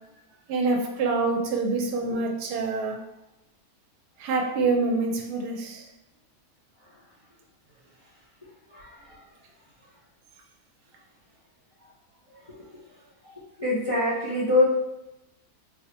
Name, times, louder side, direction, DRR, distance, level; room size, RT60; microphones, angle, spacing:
voice 1, 0.5-3.0 4.2-5.8, right 3 dB, 80° right, 2 dB, 1.1 m, -26 dB
voice 2, 8.7-9.2 12.4-12.5 13.6-14.6, left 2 dB, 45° left, -9 dB, 0.3 m, -24 dB
3.9 x 2.1 x 2.9 m, 0.91 s
omnidirectional pair, 1.7 m